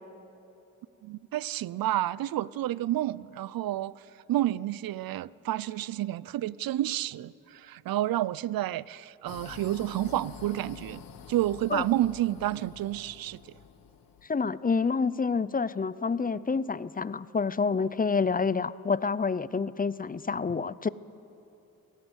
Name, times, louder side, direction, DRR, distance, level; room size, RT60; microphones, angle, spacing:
voice 1, 1.0-3.9 4.3-11.0 11.3-13.4, right 14 dB, 85° right, 0.5 m, -30 dB
sound 1, 9.3-14.3, left 8 dB, 90° left, 1.1 m, -47 dB
voice 2, 14.3-20.9, left 5 dB, 25° left, 0.5 m, -28 dB
23.0 x 17.5 x 8.1 m
cardioid pair, 80°, 34 cm